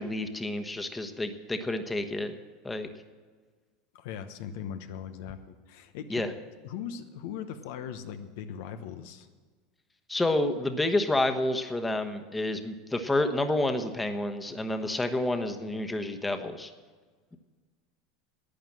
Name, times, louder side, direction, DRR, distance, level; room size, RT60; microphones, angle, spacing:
voice 1, 0.0-2.4 2.6-2.9 6.1-6.3 10.1-16.7, left 2 dB, 10° left, 7 dB, 1.2 m, -29 dB
voice 2, 3.9-6.3 6.6-9.3, left 8 dB, 70° left, 8 dB, 0.9 m, -39 dB
11.5 x 9.1 x 7.6 m, 1.5 s
hypercardioid pair, 95°, 0 cm